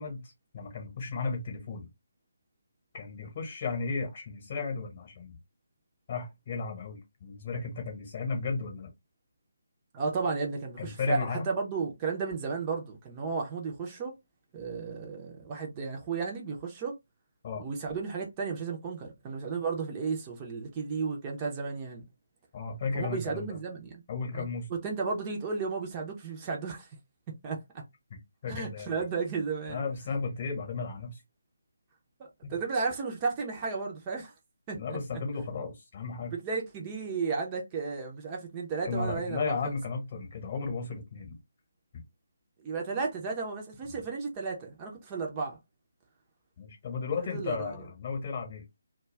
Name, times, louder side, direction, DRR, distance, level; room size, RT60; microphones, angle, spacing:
voice 1, 0.0-1.9 2.9-5.4 6.1-8.9 10.8-11.4 17.4-17.6 22.5-23.6 24.1-24.7 28.4-29.0 29.7-31.2 32.4-32.5 34.7-36.3 38.8-41.4 41.9-42.0 43.9-44.0 46.6-48.6, left 4 dB, 30° left, 1.0 m, -34 dB
voice 2, 9.9-14.1 14.5-17.0 17.6-22.0 22.9-24.0 24.3-26.9 27.4-27.6 28.5-29.8 32.2-34.3 34.7-34.8 36.4-39.8 42.6-45.6 47.3-47.8, right 4 dB, 20° right, 0.6 m, -33 dB
2.3 x 2.3 x 3.2 m
figure-of-eight pair, 150°, 0 cm